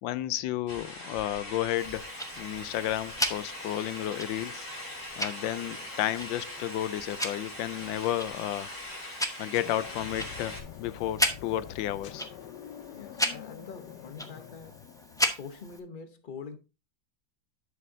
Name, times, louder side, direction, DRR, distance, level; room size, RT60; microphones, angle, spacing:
voice 1, 0.0-2.1 2.4-4.7 5.2-8.7 9.4-12.3, left 13 dB, 90° left, 1.3 m, -32 dB
sound 1, 0.7-10.6, left 1 dB, 55° left, 3.3 m, -41 dB
Tick-tock, 1.8-15.8, equal, 5° left, 0.3 m, -36 dB
sound 2, 9.5-15.5, left 10 dB, 70° left, 1.2 m, -46 dB
voice 2, 12.9-14.8 15.3-16.6, left 5 dB, 35° left, 0.8 m, -44 dB
10.5 x 6.6 x 2.7 m
omnidirectional pair, 2.0 m